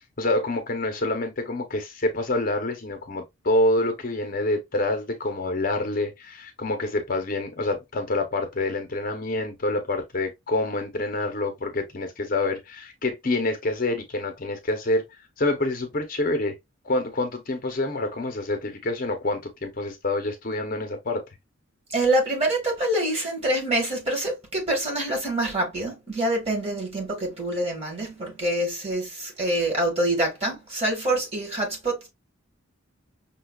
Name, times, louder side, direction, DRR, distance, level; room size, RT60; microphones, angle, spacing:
voice 1, 0.2-15.0 15.4-16.5 16.8-21.2, left 2 dB, 40° left, 0.7 m, -27 dB
voice 2, 21.9-32.1, right 1 dB, 30° right, 1.3 m, -26 dB
5.6 x 2.3 x 2.2 m
head